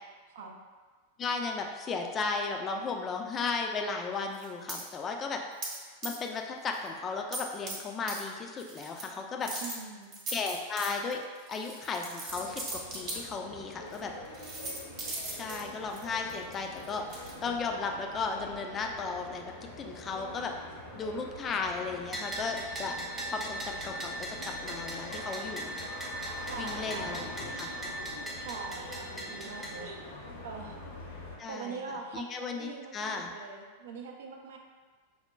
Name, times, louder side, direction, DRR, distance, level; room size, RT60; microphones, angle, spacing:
voice 1, 1.2-5.4 6.0-9.5 10.3-11.2 11.5-14.1 15.3-17.0 17.4-19.5 19.8-20.5 21.0-23.0 23.2-25.8 26.6-27.3 27.5-27.7 31.4-31.8 32.1-33.3, left 4 dB, 25° left, 3 dB, 0.4 m, -35 dB
sound 1, 4.3-4.8 5.6-5.8 6.0-6.4 6.7-6.9 7.3-7.8 8.1-8.2 8.6-9.1 9.4-13.2 13.9-14.0 14.3-17.3, right 2 dB, 35° right, 1.0 m, -39 dB
voice 2, 9.6-10.2 26.3-27.2 28.4-30.0 30.4-30.8 31.4-34.6, right 5 dB, 60° right, 2 dB, 0.4 m, -43 dB
sound 2, 12.3-31.4, left 1 dB, 65° left, 0.8 m, -44 dB
Bell, 22.1-29.7, right 1 dB, 10° right, 0.6 m, -39 dB
5.4 x 2.1 x 2.2 m, 1.4 s
figure-of-eight pair, 90°, 0 cm